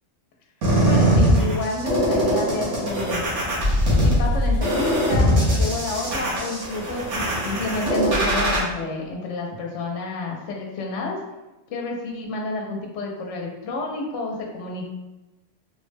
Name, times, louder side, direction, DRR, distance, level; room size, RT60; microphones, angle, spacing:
sound 1, 0.6-8.6, equal, 80° right, 1.3 m, -21 dB
voice 1, 0.9-3.2 4.0-11.2 11.7-14.9, left 2 dB, 75° left, 0 dB, 0.9 m, -30 dB
3.7 x 2.1 x 3.1 m, 1.1 s
omnidirectional pair, 1.2 m